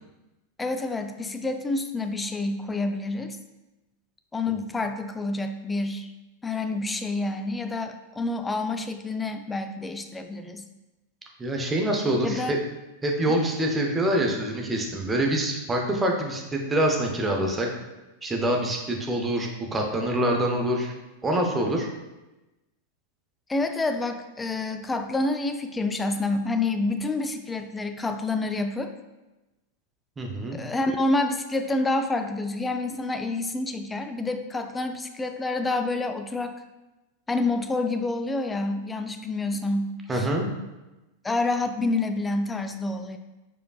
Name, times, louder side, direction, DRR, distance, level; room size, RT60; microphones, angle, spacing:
voice 1, 0.6-3.4 4.3-6.1 6.4-10.6 12.2-12.6 13.3-13.4 23.5-28.9 30.5-36.6 37.3-40.3 41.2-43.2, left 2 dB, 10° left, 7 dB, 0.3 m, -28 dB
voice 2, 11.4-12.6 13.0-17.7 18.2-20.9 21.2-21.9 30.2-30.6 40.1-40.5, right 1 dB, 15° right, 1 dB, 0.7 m, -25 dB
4.7 x 4.4 x 2.3 m, 1.0 s
figure-of-eight pair, 90°, 0 cm